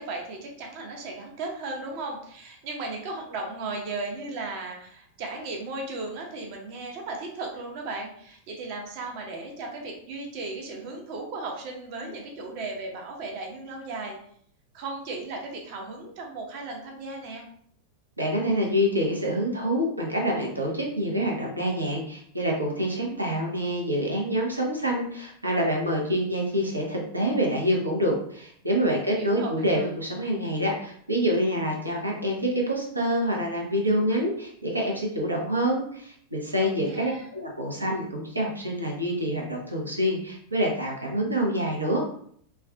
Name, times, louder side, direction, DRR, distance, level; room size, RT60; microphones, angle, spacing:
voice 1, 0.0-14.2 14.7-17.4 28.9-29.9 36.6-37.3, right 3 dB, 45° right, 1 dB, 0.7 m, -36 dB
voice 2, 18.2-42.0, equal, 85° right, -1 dB, 0.7 m, -26 dB
3.3 x 2.3 x 2.3 m, 0.62 s
figure-of-eight pair, 90°, 0 cm